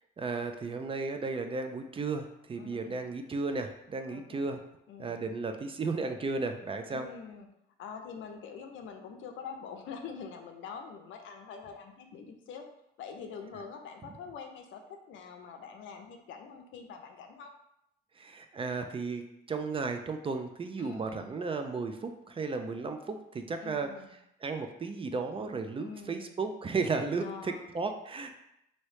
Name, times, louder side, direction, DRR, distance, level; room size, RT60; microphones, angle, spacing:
voice 1, 0.2-4.6 5.0-7.1 18.2-23.9 24.4-28.4, right 4 dB, 25° right, 6 dB, 0.3 m, -34 dB
voice 2, 2.6-3.1 4.1-4.5 4.9-5.2 6.9-7.5 7.8-12.6 13.0-14.8 15.1-17.5 20.8-21.4 23.6-24.2 25.8-26.4 27.2-27.7, left 6 dB, 75° left, 5 dB, 0.5 m, -45 dB
3.0 x 2.7 x 3.2 m, 0.81 s
cardioid pair, 90°, 20 cm